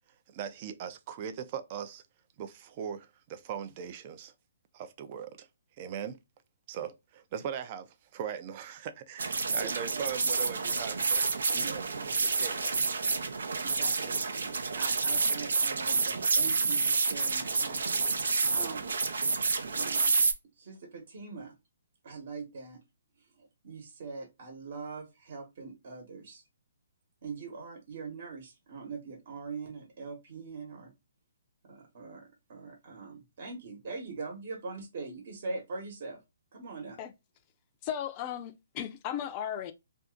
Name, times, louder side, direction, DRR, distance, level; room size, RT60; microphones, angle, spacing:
voice 1, 0.3-2.0 2.4-4.3 4.7-5.5 5.8-6.2 6.7-11.2 11.7-11.9 12.2-12.7, right 8 dB, 35° right, 0.4 m, -39 dB
sound 1, 9.2-20.3, right 4 dB, 85° right, 0.6 m, -29 dB
voice 2, 9.6-10.0 11.5-12.1 13.6-18.0 18.5-18.9 19.8-20.2 20.6-21.5 22.0-22.8 23.4-26.4 27.2-30.9 31.6-36.2 36.5-37.0, right 4 dB, 55° right, 1.1 m, -42 dB
voice 3, 37.8-39.7, left 9 dB, 30° left, 0.5 m, -36 dB
2.6 x 2.4 x 3.6 m
hypercardioid pair, 150°, 0 cm